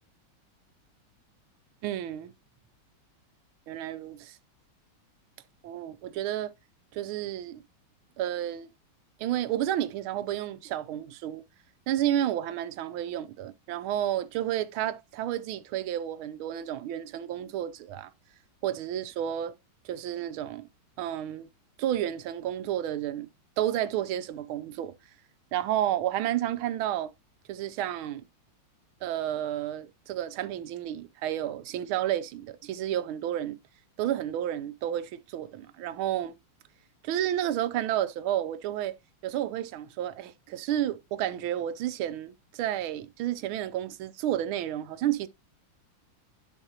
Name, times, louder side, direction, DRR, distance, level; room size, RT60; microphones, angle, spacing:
voice 1, 1.8-2.3 3.7-4.4 5.6-6.5 6.9-7.6 8.2-8.7 9.2-11.4 11.9-18.1 18.6-19.5 19.8-20.7 21.0-21.5 21.8-23.3 23.6-24.9 25.5-27.1 27.5-28.2 29.0-33.6 34.0-36.3 37.0-39.0 39.2-45.3, right 12 dB, 75° right, 1.5 m, -31 dB
11.0 x 5.8 x 2.8 m
omnidirectional pair, 2.3 m